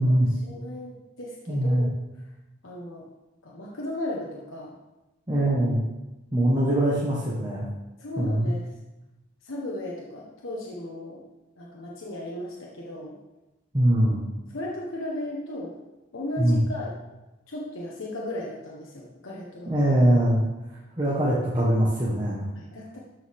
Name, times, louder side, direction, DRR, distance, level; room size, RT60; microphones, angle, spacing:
voice 1, 0.0-1.9 2.6-3.1 3.4-4.8 6.7-6.8 8.0-8.6 9.4-11.2 11.6-13.2 14.5-15.7 16.1-16.9 17.5-19.9 21.0-21.2 22.6-23.0, left 1 dB, 80° left, -3 dB, 1.3 m, -36 dB
voice 2, 1.5-1.9 5.3-5.8 6.3-7.7 8.2-8.5 13.7-14.2 16.4-16.6 19.7-20.4 20.7-22.5, right 1 dB, 20° right, -7 dB, 1.5 m, -22 dB
13.0 x 6.2 x 3.7 m, 1.0 s
head